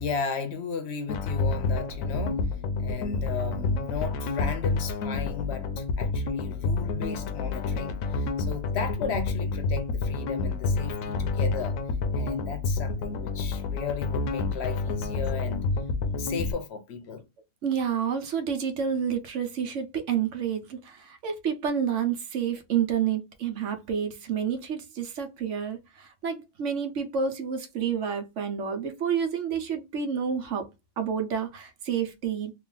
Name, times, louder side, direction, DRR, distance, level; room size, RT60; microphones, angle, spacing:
voice 1, 0.0-2.4 2.8-11.8 12.1-15.7 16.2-17.2, left 5 dB, 60° left, 0.8 m, -35 dB
sound 1, 1.1-16.5, left 3 dB, 85° left, 1.0 m, -29 dB
voice 2, 17.6-30.7 31.0-32.5, right 7 dB, 70° right, 1.0 m, -29 dB
3.0 x 2.4 x 3.8 m
omnidirectional pair, 1.3 m